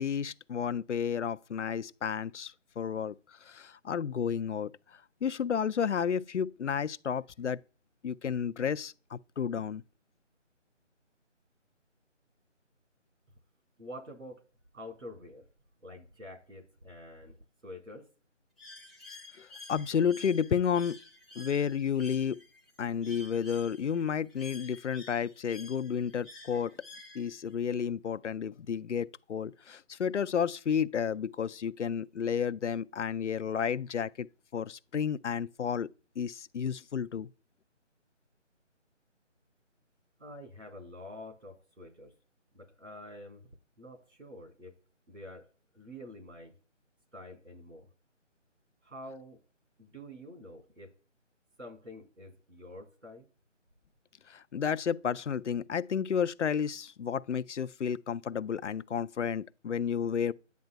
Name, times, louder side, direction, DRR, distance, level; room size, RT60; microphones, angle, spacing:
voice 1, 0.0-3.2 3.5-4.7 5.2-7.6 8.0-9.8 19.4-21.0 21.4-22.4 22.8-26.7 27.1-34.3 34.5-35.9 36.2-37.3 54.3-60.3, left 7 dB, 70° left, 0.5 m, -31 dB
voice 2, 13.8-14.4 14.7-15.4 15.8-17.4 17.6-18.1 40.2-42.1 42.5-43.5 43.8-44.7 45.1-45.5 45.7-46.5 47.1-47.9 48.8-49.4 49.8-50.9 51.6-53.3, left 1 dB, 80° right, 4.0 m, -47 dB
Bird, 18.6-27.5, left 3 dB, ahead, 0.5 m, -51 dB
9.2 x 7.4 x 2.2 m
figure-of-eight pair, 175°, 37 cm